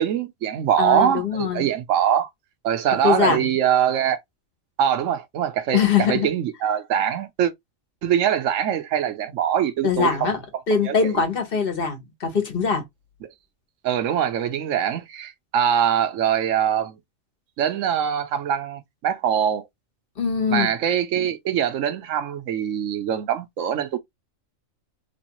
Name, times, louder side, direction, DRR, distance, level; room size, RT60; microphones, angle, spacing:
voice 1, 0.0-2.3 2.6-4.2 4.8-7.5 8.0-10.3 10.9-11.0 13.8-17.0 17.6-19.6 20.5-24.0, right 9 dB, 75° right, 1.0 m, -23 dB
voice 2, 0.8-1.7 3.0-3.5 5.7-6.3 9.8-10.4 10.7-12.8 20.2-20.7, left 6 dB, 45° left, 1.3 m, -22 dB
3.4 x 3.1 x 2.9 m
omnidirectional pair, 1.4 m